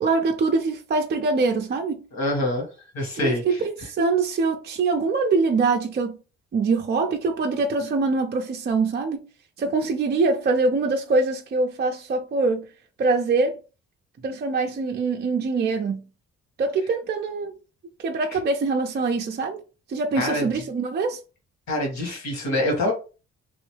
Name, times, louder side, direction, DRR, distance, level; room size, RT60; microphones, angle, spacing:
voice 1, 0.0-2.1 3.2-6.2 6.5-9.3 9.6-12.7 13.0-13.6 14.2-16.0 16.6-17.5 18.0-19.6 19.9-21.2, right 3 dB, 35° right, 0.4 m, -24 dB
voice 2, 2.1-2.7 2.9-3.6 20.2-20.5 21.7-22.9, left 1 dB, 65° left, 1.7 m, -25 dB
3.0 x 2.6 x 3.2 m
cardioid pair, 90°, 30 cm